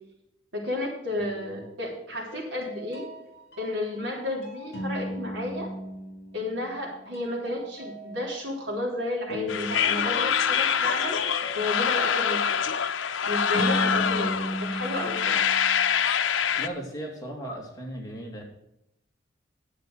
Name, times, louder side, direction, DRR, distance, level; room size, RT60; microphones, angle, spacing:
voice 1, 0.5-3.1 3.6-5.7 6.3-11.2 11.6-12.6 13.3-14.3 14.6-15.4, left 1 dB, 70° right, 0 dB, 3.4 m, -32 dB
sound 1, 1.3-1.9 2.3-6.9 7.1-15.9, equal, 55° left, 3.3 m, -37 dB
sound 2, 9.5-16.7, left 8 dB, 85° left, 0.7 m, -25 dB
voice 2, 16.6-18.4, right 1 dB, 20° left, -2 dB, 2.4 m, -36 dB
10.5 x 8.2 x 6.2 m, 0.83 s
head